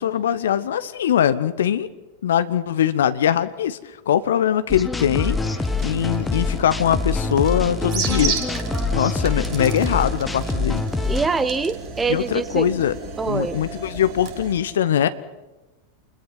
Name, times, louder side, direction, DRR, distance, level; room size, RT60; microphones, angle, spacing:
voice 1, 0.0-1.9 2.2-8.4 8.9-10.8 12.1-13.0 13.3-15.1, left 9 dB, 60° left, 13 dB, 1.0 m, -22 dB
sound 1, 4.7-11.3, left 3 dB, 10° left, 1.3 m, -25 dB
sound 2, 5.2-14.6, right 4 dB, 35° right, 4.5 m, -33 dB
voice 2, 11.0-12.7 13.2-13.6, right 4 dB, 15° right, 15 dB, 1.2 m, -24 dB
28.0 x 21.0 x 6.2 m, 1.1 s
figure-of-eight pair, 90°, 0 cm